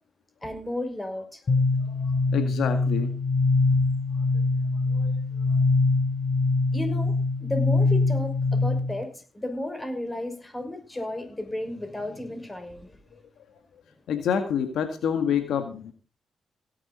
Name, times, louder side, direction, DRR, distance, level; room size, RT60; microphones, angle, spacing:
voice 1, 0.4-1.4 6.7-7.1 7.4-12.9, left 1 dB, 20° left, 6 dB, 5.9 m, -33 dB
sound 1, 1.5-9.0, left 3 dB, 50° left, 3.0 m, -23 dB
voice 2, 1.8-3.1 4.9-5.1 5.5-5.6 14.1-15.9, left 8 dB, 80° left, 8 dB, 1.8 m, -28 dB
17.0 x 11.0 x 4.3 m, 0.35 s
supercardioid pair, 60°, 0 cm